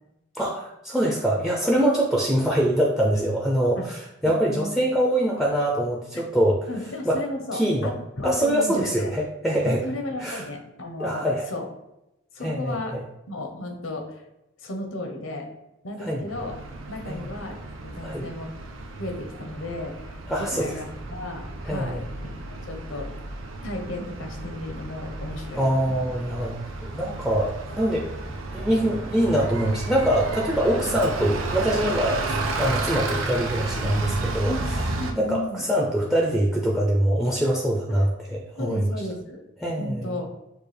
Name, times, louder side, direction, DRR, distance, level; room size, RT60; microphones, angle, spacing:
voice 1, 0.3-6.6 7.0-7.2 7.5-7.9 8.2-9.8 10.2-10.4 11.0-11.5 12.4-13.0 16.0-16.2 17.1-17.3 18.0-18.2 20.3-20.7 21.7-22.0 25.5-28.1 28.5-32.2 32.6-34.5 35.2-38.8 39.6-40.1, right 1 dB, ahead, -1 dB, 0.4 m, -24 dB
voice 2, 4.2-4.7 6.1-6.2 6.7-9.1 9.6-11.7 12.3-13.0 13.3-14.2 14.6-15.5 15.8-16.5 16.9-18.5 19.0-22.0 22.5-23.2 23.6-26.1 26.4-26.5 34.4-35.6 37.9-38.0 38.6-39.4 39.8-40.3, left 1 dB, 85° left, 3 dB, 1.0 m, -34 dB
Bus, 16.3-35.1, right 2 dB, 85° right, 0.6 m, -32 dB
6.6 x 2.3 x 3.3 m, 0.92 s
head